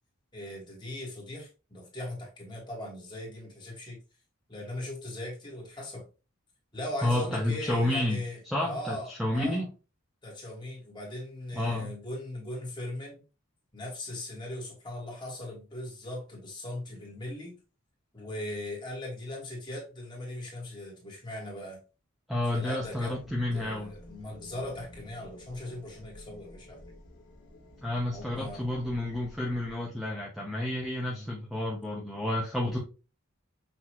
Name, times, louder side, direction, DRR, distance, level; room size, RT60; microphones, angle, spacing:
voice 1, 0.3-4.0 4.5-6.0 6.7-9.6 10.2-13.2 13.7-17.6 18.1-21.8 22.5-23.1 23.5-26.9 28.1-28.6 31.1-31.3 32.6-32.8, left 1 dB, 20° left, -2 dB, 1.7 m, -39 dB
voice 2, 7.0-8.2 8.5-9.7 11.5-11.9 22.3-23.9 27.8-32.8, left 1 dB, ahead, -3 dB, 0.7 m, -30 dB
sound 1, 22.8-29.7, left 1 dB, 60° left, 1.3 m, -51 dB
5.9 x 2.7 x 3.0 m, 0.32 s
head